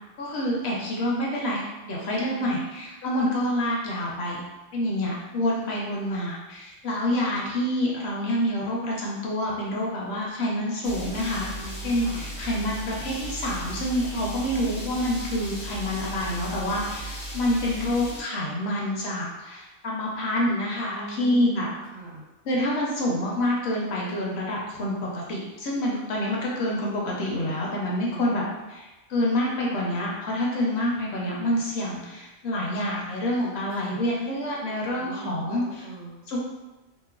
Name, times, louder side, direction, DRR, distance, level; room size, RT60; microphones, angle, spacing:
voice 1, 0.2-4.4 4.7-11.5 11.8-21.7 22.5-28.4 28.7-28.8 29.1-35.6 36.3-36.4, left 1 dB, 65° left, -3 dB, 0.8 m, -27 dB
voice 2, 2.3-2.7 11.5-12.3 16.0-16.5 20.9-22.2 27.9-28.4 31.1-31.6 33.7-34.0 34.9-36.2, right 1 dB, 85° right, -2 dB, 1.0 m, -41 dB
sound 1, 10.8-18.2, right 1 dB, 50° left, 0.3 m, -36 dB
3.0 x 2.1 x 2.3 m, 1.1 s
omnidirectional pair, 1.3 m